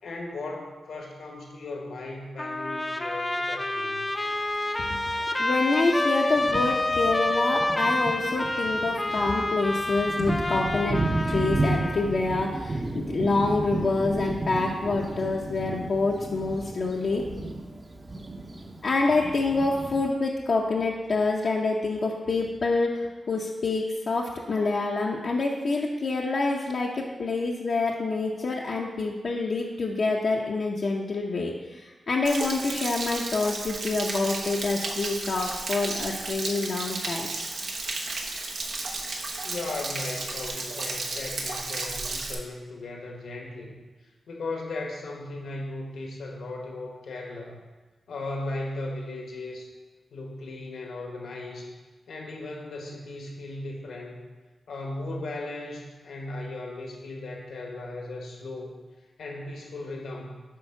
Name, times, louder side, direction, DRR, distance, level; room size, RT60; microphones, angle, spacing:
voice 1, 0.0-4.1 39.4-43.8 44.3-47.6 48.1-49.7 50.1-51.8 52.1-54.2 54.7-58.8 59.2-60.4, left 2 dB, 85° left, 1 dB, 1.4 m, -37 dB
Trumpet, 2.4-12.1, left 1 dB, 15° left, 0.6 m, -28 dB
Thunder, 4.1-4.2 5.2-5.3 5.9-6.0 6.3-20.1, right 2 dB, 30° right, 0.8 m, -33 dB
voice 2, 5.4-17.2 18.8-37.3, left 3 dB, 60° left, -3 dB, 0.7 m, -27 dB
Stream / Splash splatter / Trickle dribble, 32.2-42.3, right 3 dB, 75° right, 1.0 m, -33 dB
8.5 x 3.6 x 5.9 m, 1.3 s
cardioid pair, 80°, 0 cm